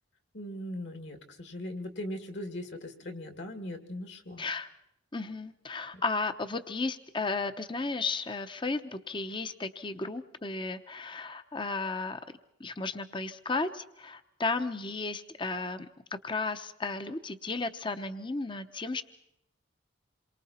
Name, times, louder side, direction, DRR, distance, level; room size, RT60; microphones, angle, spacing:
voice 1, 0.3-4.4 5.9-6.0, left 1 dB, 65° left, 6 dB, 2.4 m, -39 dB
voice 2, 4.4-4.7 5.1-12.2 12.6-19.0, left 3 dB, 25° left, 10 dB, 0.8 m, -34 dB
28.0 x 23.0 x 4.3 m, 0.80 s
head